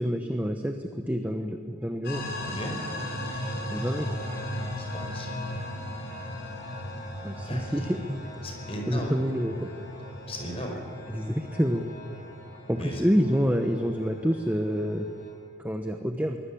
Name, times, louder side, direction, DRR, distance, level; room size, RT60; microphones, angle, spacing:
voice 1, 0.0-2.2 3.7-4.1 7.2-8.2 8.9-9.7 11.1-11.9 12.7-15.1 15.6-16.4, equal, 10° right, 5 dB, 1.0 m, -27 dB
sound 1, 2.0-15.3, left 1 dB, 50° left, 6.3 m, -37 dB
voice 2, 2.4-2.8 4.8-5.3 7.4-7.9 8.4-9.2 10.3-10.8 12.7-13.0, equal, 30° left, 2 dB, 5.1 m, -37 dB
23.5 x 21.0 x 8.6 m, 2.2 s
head